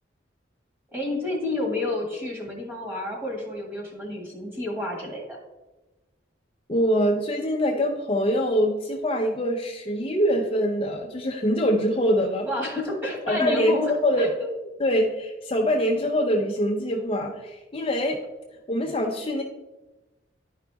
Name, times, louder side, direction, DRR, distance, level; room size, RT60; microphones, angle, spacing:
voice 1, 0.9-5.4 12.4-14.5, left 2 dB, 10° right, -1 dB, 1.8 m, -30 dB
voice 2, 6.7-12.5 13.3-14.3 14.8-18.2 18.7-19.4, equal, 30° left, 1 dB, 0.6 m, -24 dB
11.0 x 5.1 x 3.4 m, 1.1 s
head